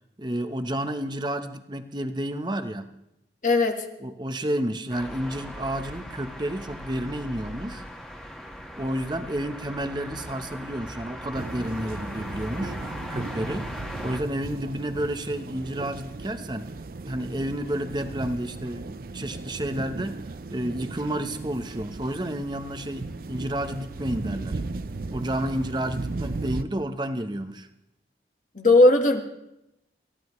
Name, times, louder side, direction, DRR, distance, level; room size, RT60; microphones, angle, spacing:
voice 1, 0.2-2.9 4.0-7.8 8.8-12.8 13.1-16.7 17.0-20.2 20.5-24.6 25.1-27.7, right 1 dB, 25° right, 8 dB, 0.9 m, -31 dB
voice 2, 3.4-3.9 28.5-29.2, left 2 dB, 45° left, 4 dB, 1.6 m, -18 dB
sound 1, 4.9-14.2, equal, 5° left, 1.6 m, -39 dB
sound 2, 11.3-26.6, right 3 dB, 50° right, 0.5 m, -36 dB
28.5 x 15.0 x 3.2 m, 0.86 s
head